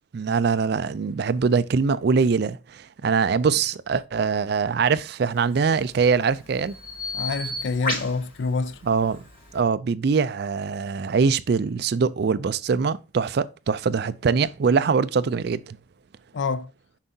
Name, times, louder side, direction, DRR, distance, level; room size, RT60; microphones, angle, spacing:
voice 1, 0.1-6.7 8.8-9.2 9.5-15.8, right 5 dB, 50° right, 0.4 m, -23 dB
Bird vocalization bird call bird song, 5.4-9.6, left 2 dB, 45° left, 3.7 m, -35 dB
voice 2, 7.1-8.8 16.3-16.7, left 4 dB, 60° left, 0.4 m, -27 dB
7.3 x 5.3 x 2.7 m
head